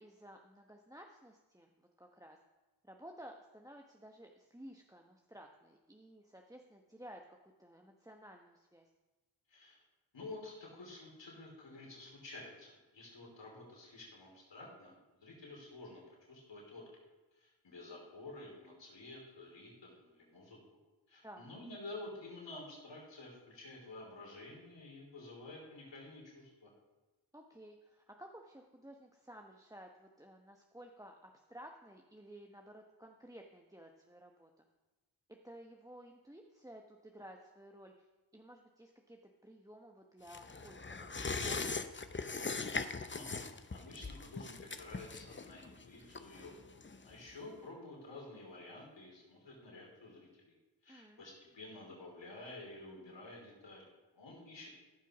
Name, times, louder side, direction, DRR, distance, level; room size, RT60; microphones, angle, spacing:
voice 1, 0.0-2.4 2.8-8.9 21.2-21.5 27.3-34.7 35.4-38.1 38.3-41.9 50.9-51.2, right 1 dB, 10° right, 2 dB, 1.0 m, -55 dB
voice 2, 9.5-9.8 10.1-16.0 16.3-16.8 17.3-20.6 21.1-26.7 43.1-43.3 43.7-46.5 47.0-50.5 50.8-54.7, left 2 dB, 75° left, -3 dB, 3.2 m, -51 dB
sound 1, 40.3-47.3 47.6-47.7, left 4 dB, 25° left, 0.8 m, -41 dB
14.5 x 5.8 x 6.0 m, 1.2 s
cardioid pair, 45°, 44 cm